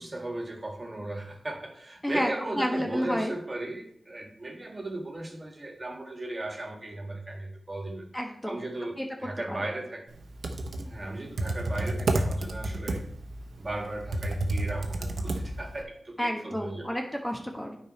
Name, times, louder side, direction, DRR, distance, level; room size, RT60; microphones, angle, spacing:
voice 1, 0.0-8.1 8.4-10.2 10.8-13.1 13.6-17.0, right 2 dB, 35° right, 3 dB, 1.7 m, -36 dB
voice 2, 2.0-3.3 8.1-8.6 9.0-9.1 9.5-9.6 10.8-10.9 16.2-17.8, equal, 10° left, 2 dB, 1.2 m, -30 dB
Computer keyboard, 10.2-15.8, right 2 dB, 80° right, 0.9 m, -30 dB
9.2 x 5.1 x 4.2 m, 0.66 s
cardioid pair, 60°, 0 cm